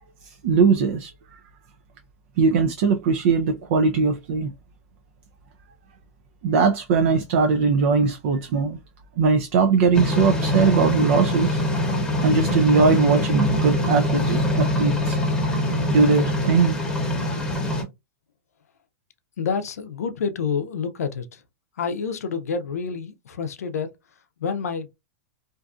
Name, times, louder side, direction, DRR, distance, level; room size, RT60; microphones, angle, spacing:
voice 1, 0.4-1.1 2.4-4.5 6.4-8.8 9.2-11.6 12.2-15.2 15.9-16.8, right 4 dB, 55° right, 0.4 m, -20 dB
sound 1, 9.9-17.8, left 1 dB, 10° left, 0.9 m, -24 dB
voice 2, 19.4-21.4 21.8-23.9 24.4-24.9, left 6 dB, 85° left, 0.5 m, -28 dB
2.5 x 2.4 x 2.3 m
hypercardioid pair, 125°, 8 cm